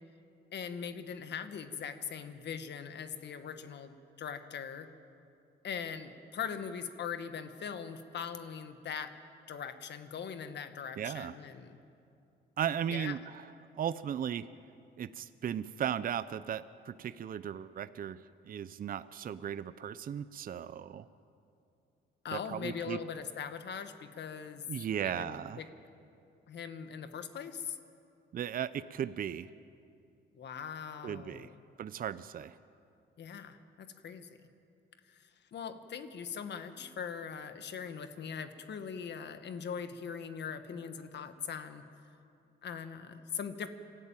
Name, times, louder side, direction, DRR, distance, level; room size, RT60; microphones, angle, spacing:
voice 1, 0.5-4.9 5.6-9.1 9.5-11.8 12.9-13.1 22.2-24.6 25.0-25.7 26.5-27.8 30.3-31.6 33.2-34.3 35.1-41.8 42.6-43.7, left 7 dB, 60° left, 9 dB, 1.4 m, -41 dB
voice 2, 11.0-11.4 12.6-13.4 13.8-14.5 15.0-18.2 18.5-21.0 22.3-23.0 24.7-25.6 28.3-29.5 31.0-31.5 31.8-32.5, right 9 dB, 45° right, 14 dB, 0.6 m, -36 dB
24.5 x 13.5 x 9.0 m, 2.6 s
cardioid pair, 90°, 20 cm